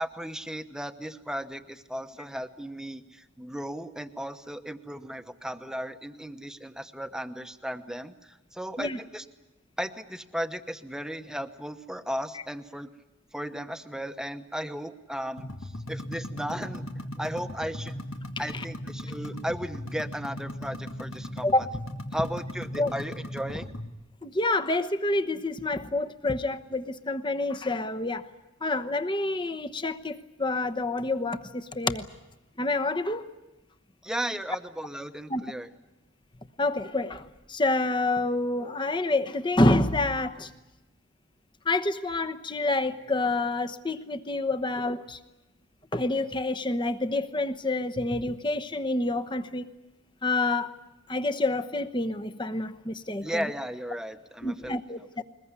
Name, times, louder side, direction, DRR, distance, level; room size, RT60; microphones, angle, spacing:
voice 1, 0.0-9.3 9.8-12.9 13.3-18.0 18.4-21.7 22.1-23.7 34.0-35.7 53.2-55.1, equal, 5° right, 8 dB, 1.0 m, -35 dB
sound 1, 15.4-23.9, left 1 dB, 80° left, 1.8 m, -38 dB
voice 2, 24.2-28.3 28.6-32.1 32.6-33.2 35.3-35.4 36.6-37.2 37.5-40.5 41.7-45.2 45.9-49.7 50.2-50.7 51.1-53.4 54.4-55.2, left 2 dB, 25° left, 9 dB, 1.0 m, -28 dB
22.0 x 20.5 x 9.7 m, 1.0 s
head